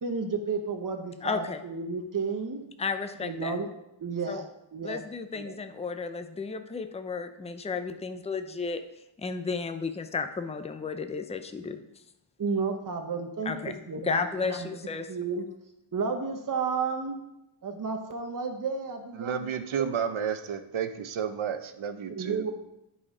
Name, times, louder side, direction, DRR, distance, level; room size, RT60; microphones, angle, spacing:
voice 1, 0.0-2.6 3.2-3.7 4.0-4.4 4.7-5.0 5.3-5.5 12.4-14.8 15.1-15.5 15.9-17.2 17.6-19.5 19.8-20.1 22.1-22.5, right 4 dB, 40° right, 4 dB, 0.9 m, -32 dB
voice 2, 1.2-1.6 2.8-3.5 4.3-4.4 4.8-8.8 9.2-11.8 13.5-15.1, left 5 dB, 15° left, 8 dB, 0.4 m, -33 dB
voice 3, 19.2-22.5, right 7 dB, 70° right, 9 dB, 0.8 m, -31 dB
10.0 x 4.3 x 4.9 m, 0.86 s
wide cardioid pair, 130°, 50 cm